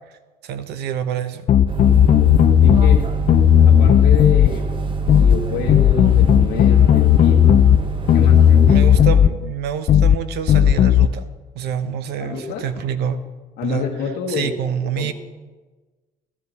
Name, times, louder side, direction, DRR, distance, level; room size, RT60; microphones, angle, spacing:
voice 1, 0.4-1.4 8.7-11.2 11.5-13.2 13.6-13.9 14.3-15.1, right 8 dB, 75° right, 11 dB, 0.8 m, -26 dB
sound 1, 1.5-3.0 3.3-4.5 5.1-5.4 5.7-7.8 8.1-9.3 9.9-10.2 10.5-11.1, left 9 dB, 45° left, 0.4 m, -13 dB
sound 2, 1.7-9.1, right 4 dB, 30° right, 1.0 m, -26 dB
voice 2, 2.6-3.2 3.6-4.7 5.1-7.6 8.1-8.9 12.2-12.7 13.6-14.6 15.0-15.1, left 5 dB, 85° left, -3 dB, 1.3 m, -28 dB
12.5 x 12.5 x 4.1 m, 1.3 s
cardioid pair, 110°, 17 cm